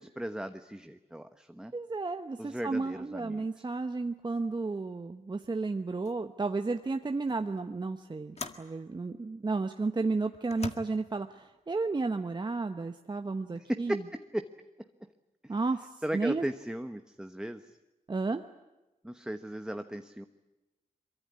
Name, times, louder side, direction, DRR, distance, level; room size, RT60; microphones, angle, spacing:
voice 1, 0.0-1.7 2.4-3.5 13.7-14.5 15.4-15.5 16.0-17.6 19.0-20.3, right 1 dB, 5° right, 8 dB, 1.0 m, -36 dB
voice 2, 1.7-14.0 15.5-16.4 18.1-18.4, right 3 dB, 30° right, 7 dB, 1.0 m, -32 dB
sound 1, 5.4-5.6 6.1-6.3 7.3-7.4 8.4-8.7 9.5-9.6 10.4-10.8, left 4 dB, 45° left, 1.8 m, -41 dB
23.5 x 23.0 x 9.7 m, 1.0 s
cardioid pair, 85°, 15 cm